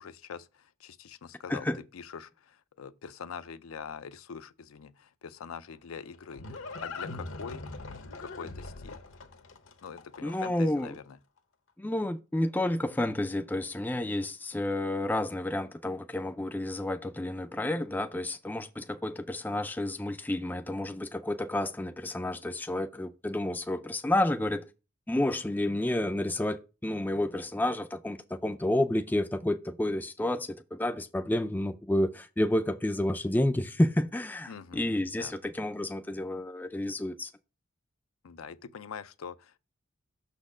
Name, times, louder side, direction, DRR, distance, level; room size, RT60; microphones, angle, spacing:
voice 1, 0.0-7.6 8.2-9.0 9.8-11.2 34.5-34.8 35.1-35.3 38.2-39.6, left 6 dB, 85° left, 0.5 m, -44 dB
voice 2, 1.5-1.8 10.2-10.9 11.8-24.7 25.1-37.3, left 1 dB, 10° left, 0.3 m, -30 dB
Livestock farm animals working animals, 5.7-10.8, left 3 dB, 65° left, 0.9 m, -42 dB
6.3 x 4.2 x 4.9 m
head